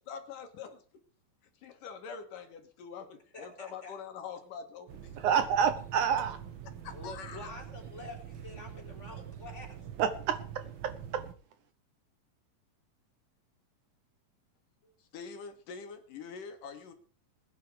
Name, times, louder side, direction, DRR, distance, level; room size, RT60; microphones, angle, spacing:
voice 1, 0.1-0.8 1.6-5.5 6.8-7.5 14.8-16.9, left 6 dB, 70° left, 6 dB, 3.2 m, -44 dB
voice 2, 3.3-3.9 6.9-9.8, left 2 dB, 20° left, 0 dB, 4.5 m, -47 dB
sound 1, 4.9-11.3, right 9 dB, 55° right, 1.5 m, -45 dB
voice 3, 5.2-6.4 10.0-11.2, right 8 dB, 70° right, 11 dB, 2.2 m, -29 dB
20.5 x 9.5 x 4.9 m, 0.40 s
omnidirectional pair, 3.9 m